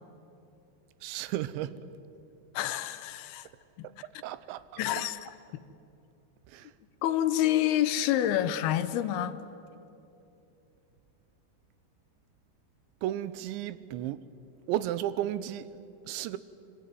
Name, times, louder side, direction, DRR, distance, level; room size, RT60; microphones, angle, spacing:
voice 1, 1.0-1.8 3.8-5.1 6.5-6.7 13.0-14.2 14.7-15.8 16.0-16.4, right 12 dB, 90° right, 3.1 m, -34 dB
voice 2, 2.5-3.5 3.8-3.9 4.8-5.3 7.0-9.4, left 12 dB, 75° left, 2.6 m, -28 dB
24.5 x 24.5 x 9.6 m
omnidirectional pair, 5.2 m